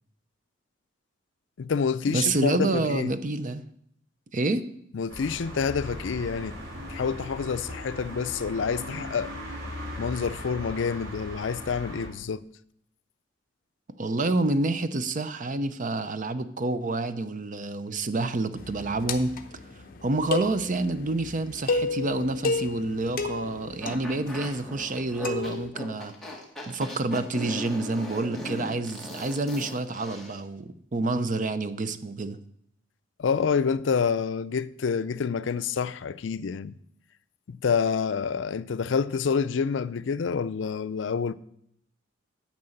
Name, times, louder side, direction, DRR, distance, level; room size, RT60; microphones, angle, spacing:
voice 1, 1.6-3.1 4.9-9.3 10.0-12.4 33.2-36.7 37.5-41.3, left 6 dB, 70° left, 0.4 m, -28 dB
voice 2, 2.1-3.6 4.3-4.6 14.0-19.4 20.0-26.1 26.7-32.4, right 2 dB, 45° right, 0.6 m, -28 dB
sound 1, 5.1-12.1, equal, 85° right, 3.5 m, -38 dB
sound 2, 18.6-25.7, left 3 dB, 50° left, 0.8 m, -33 dB
sound 3, 23.8-30.4, equal, ahead, 1.8 m, -38 dB
9.6 x 6.1 x 7.8 m
head